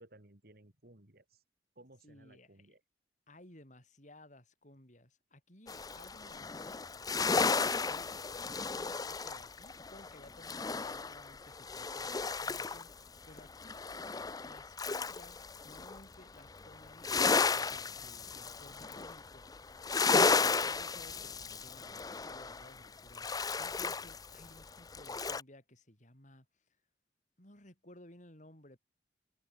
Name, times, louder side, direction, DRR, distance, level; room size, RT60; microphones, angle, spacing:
voice 1, 0.0-1.4 1.7-2.8, right 1 dB, 60° right, 3.0 m, -59 dB
voice 2, 2.0-2.7 3.3-6.6 7.6-13.8 14.4-19.5 20.0-23.3 23.6-26.5 27.4-28.8, left 1 dB, 45° left, 7.0 m, -58 dB
sound 1, 5.7-12.9 13.2-16.0 16.4-25.4, left 4 dB, 20° left, 0.5 m, -34 dB
head